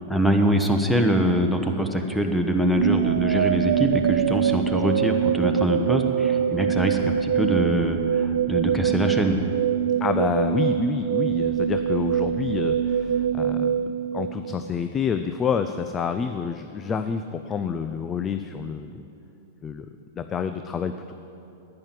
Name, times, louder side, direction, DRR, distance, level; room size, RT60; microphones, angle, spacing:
voice 1, 0.1-9.4, equal, 5° left, 4 dB, 1.2 m, -23 dB
sound 1, 2.7-14.8, right 9 dB, 75° right, 0.3 m, -24 dB
voice 2, 10.0-13.8 14.1-19.0 19.6-19.9 20.2-21.1, left 6 dB, 25° left, 9 dB, 0.5 m, -28 dB
10.5 x 9.7 x 7.6 m, 2.9 s
hypercardioid pair, 110°, 0 cm